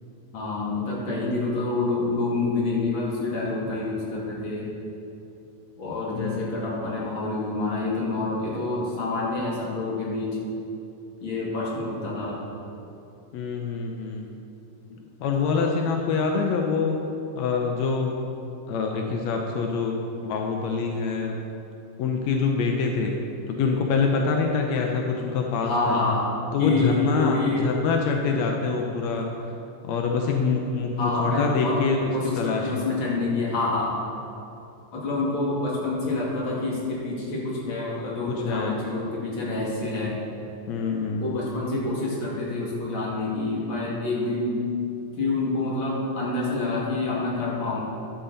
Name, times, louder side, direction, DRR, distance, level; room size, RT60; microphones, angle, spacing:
voice 1, 0.3-4.7 5.8-10.4 11.2-12.4 25.6-26.3 26.6-27.7 31.0-31.9 32.1-34.0 34.9-40.2 40.9-44.6 45.2-47.8, left 3 dB, 40° left, -5 dB, 2.4 m, -27 dB
voice 2, 6.1-6.7 13.3-14.3 15.2-17.0 17.3-18.2 18.7-20.0 20.2-21.4 22.0-23.2 23.5-26.0 26.5-29.3 29.8-32.1 32.4-32.9 38.3-38.8 40.7-41.3, left 4 dB, 85° left, 1 dB, 1.6 m, -25 dB
11.5 x 8.5 x 4.0 m, 2.7 s
omnidirectional pair, 4.0 m